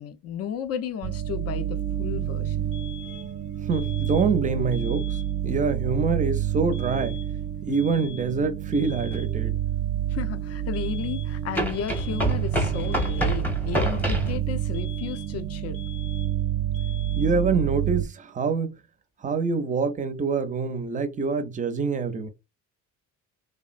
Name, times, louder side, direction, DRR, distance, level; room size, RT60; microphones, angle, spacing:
voice 1, 0.0-2.7 10.1-15.8, left 8 dB, 50° left, 0.5 m, -34 dB
sound 1, 1.0-18.0, right 12 dB, 75° right, 0.5 m, -29 dB
sound 2, 2.7-3.4 3.7-4.4 4.7-5.4 6.7-7.4 7.7-8.4 8.7-9.4 10.7-11.4 11.7-12.4 12.7-13.4 14.7-15.4 15.7-16.4 16.7-17.4, left 9 dB, 90° left, 0.7 m, -46 dB
voice 2, 3.6-5.2 5.4-7.2 7.6-9.5 17.2-18.8 19.2-22.3, right 4 dB, 25° right, 0.5 m, -26 dB
sound 3, 9.1-9.2 11.5-14.4, equal, 5° left, 0.8 m, -27 dB
3.2 x 2.0 x 2.4 m
cardioid pair, 135°, 31 cm